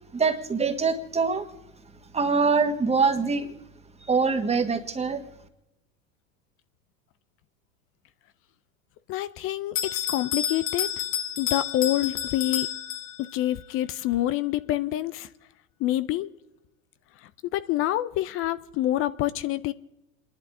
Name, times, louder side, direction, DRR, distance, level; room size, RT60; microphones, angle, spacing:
voice 1, 0.1-1.4 2.1-3.5 4.1-5.2, right 4 dB, 15° right, 6 dB, 1.7 m, -24 dB
voice 2, 9.1-10.9 11.4-12.7 13.3-15.3 15.8-16.3 17.4-19.7, left 14 dB, 35° left, 15 dB, 0.6 m, -27 dB
Bell, 9.7-13.5, left 9 dB, 70° left, 1.0 m, -30 dB
30.0 x 11.0 x 3.7 m, 0.95 s
figure-of-eight pair, 85°, 41 cm